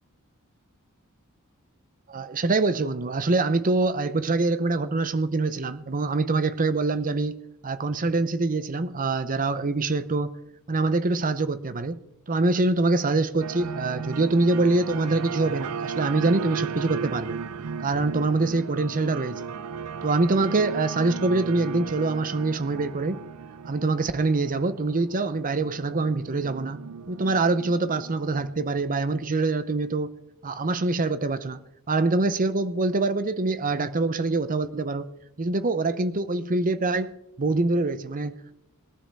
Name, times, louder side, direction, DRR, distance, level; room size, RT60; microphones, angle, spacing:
voice 1, 2.1-7.4 7.6-10.3 10.7-12.0 12.3-17.4 17.8-19.5 20.0-23.2 23.6-30.1 30.4-35.1 35.4-38.5, right 3 dB, 40° right, 0.7 m, -25 dB
sound 1, 13.4-29.7, right 6 dB, 90° right, 0.5 m, -36 dB
21.5 x 12.0 x 3.5 m
head